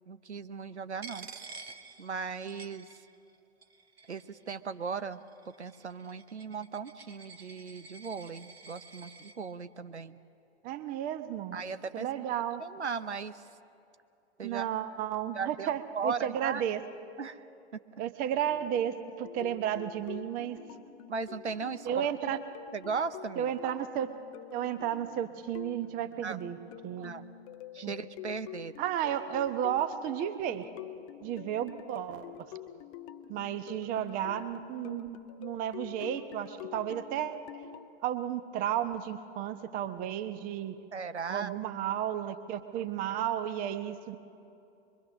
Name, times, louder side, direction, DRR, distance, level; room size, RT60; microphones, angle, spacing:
voice 1, 0.1-1.6 2.0-3.1 4.1-10.2 11.5-12.2 12.6-13.4 14.4-14.7 15.3-16.6 17.2-17.5 17.7-17.8 21.1-22.1 22.7-23.5 26.2-26.4 27.0-27.2 27.7-28.7 40.9-41.5, right 5 dB, 80° right, 12 dB, 0.8 m, -37 dB
Coin (dropping), 1.0-3.3 3.6-4.4 5.1-9.4, right 4 dB, 65° right, 1.6 m, -50 dB
voice 2, 10.6-11.6 11.9-12.6 14.4-16.8 18.0-20.6 21.8-22.4 23.4-24.1 24.5-26.6 26.8-27.1 27.8-27.9 28.8-30.7 31.2-32.5 33.3-37.6 38.0-40.8 41.3-44.2, right 10 dB, 25° right, 11 dB, 0.9 m, -33 dB
sound 1, 18.5-37.9, left 12 dB, 30° left, 0.7 m, -47 dB
24.0 x 23.0 x 6.3 m, 2.7 s
figure-of-eight pair, 105°, 34 cm